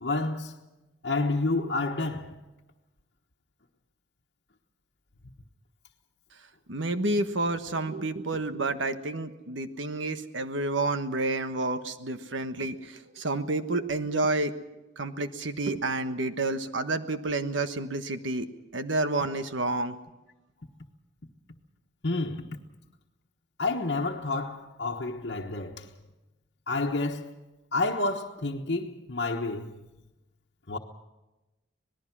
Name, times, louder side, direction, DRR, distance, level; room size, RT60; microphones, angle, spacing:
voice 1, 0.0-0.5 1.0-2.4 22.0-22.6 23.6-25.9 26.7-27.4 27.7-29.8 30.7-30.8, left 3 dB, 65° left, 1.3 m, -29 dB
voice 2, 6.7-12.8 13.2-14.5 15.0-18.5 18.7-19.9, right 2 dB, 85° right, 1.3 m, -29 dB
26.0 x 19.5 x 6.1 m
head